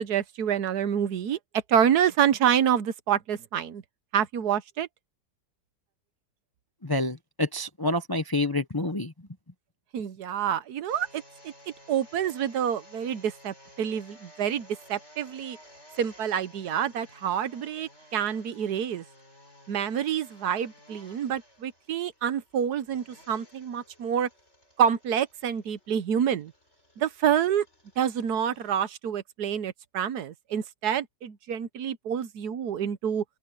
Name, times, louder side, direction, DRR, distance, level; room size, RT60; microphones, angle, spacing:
voice 1, 0.0-1.4 1.7-3.8 4.1-4.9 9.9-11.5 11.9-15.6 16.0-19.0 19.7-24.3 24.8-26.5 27.0-27.6 28.0-33.2, right 9 dB, 70° right, 1.4 m, -27 dB
voice 2, 6.8-9.3, left 2 dB, 20° left, 0.6 m, -28 dB
sound 1, 10.9-28.7, equal, 40° left, 8.2 m, -55 dB
open air
omnidirectional pair, 1.8 m